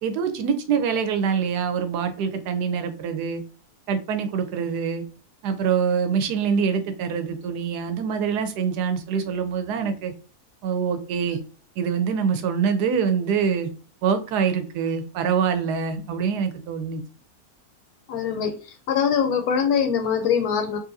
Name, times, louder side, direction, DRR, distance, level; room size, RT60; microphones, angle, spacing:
voice 1, 0.0-3.4 3.9-5.0 5.4-10.1 10.6-11.4 11.8-13.7 14.0-17.0, right 6 dB, 85° right, 8 dB, 1.2 m, -25 dB
voice 2, 18.1-18.6 18.9-20.8, left 7 dB, 75° left, 6 dB, 1.1 m, -22 dB
3.9 x 2.5 x 2.6 m, 0.37 s
omnidirectional pair, 1.7 m